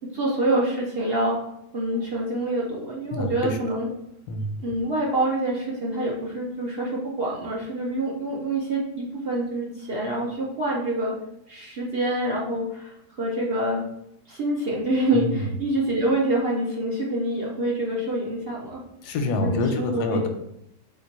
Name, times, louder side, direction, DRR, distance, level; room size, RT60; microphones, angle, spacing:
voice 1, 0.1-1.4 1.7-3.9 4.6-11.1 11.5-13.8 14.3-18.8 19.4-20.2, right 1 dB, 55° right, -4 dB, 0.7 m, -26 dB
voice 2, 3.1-3.6 4.3-4.6 15.1-15.5 19.0-20.3, left 2 dB, 85° left, 5 dB, 1.2 m, -26 dB
3.8 x 2.9 x 4.0 m, 0.79 s
omnidirectional pair, 1.7 m